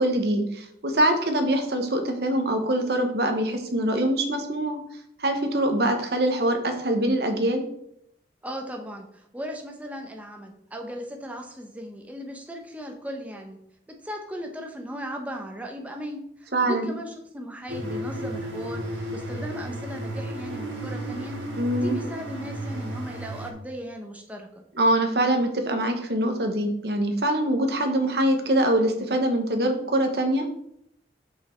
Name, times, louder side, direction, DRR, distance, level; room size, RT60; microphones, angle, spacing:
voice 1, 0.0-4.8 5.2-7.6 16.5-16.9 21.6-21.9 24.7-30.5, right 1 dB, 60° right, 5 dB, 1.1 m, -24 dB
voice 2, 8.4-13.6 13.9-18.8 19.1-21.3 21.8-24.6, equal, 10° right, 2 dB, 0.9 m, -37 dB
sound 1, 17.7-23.5, right 1 dB, 90° right, 1.4 m, -33 dB
5.7 x 5.5 x 4.5 m, 0.74 s
head